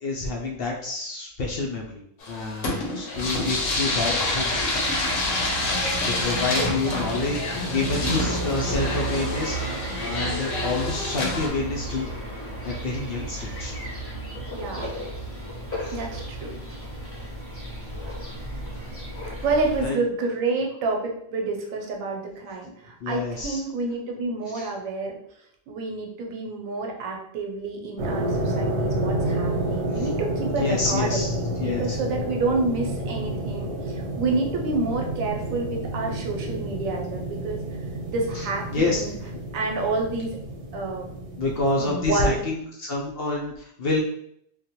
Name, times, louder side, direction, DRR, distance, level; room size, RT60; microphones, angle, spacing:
voice 1, 0.0-4.7 6.0-12.1 12.6-13.7 15.8-16.0 19.8-20.0 23.0-23.6 24.5-24.7 29.9-30.1 30.5-31.3 31.6-32.0 38.3-39.0 41.4-44.0, left 3 dB, 60° left, -2 dB, 0.6 m, -28 dB
sound 1, 2.2-11.5, left 2 dB, 85° left, 1.1 m, -28 dB
sound 2, 3.1-19.9, right 1 dB, 15° left, 0.6 m, -33 dB
voice 2, 6.6-7.3 14.5-14.9 15.9-16.6 19.4-25.2 25.7-37.6 38.1-39.2 39.5-40.4 40.7-41.1 41.8-42.4, right 3 dB, 85° right, 1 dB, 1.1 m, -29 dB
sound 3, 28.0-41.9, right 1 dB, 60° right, 0.9 m, -30 dB
3.3 x 2.1 x 2.9 m, 0.71 s
omnidirectional pair, 1.4 m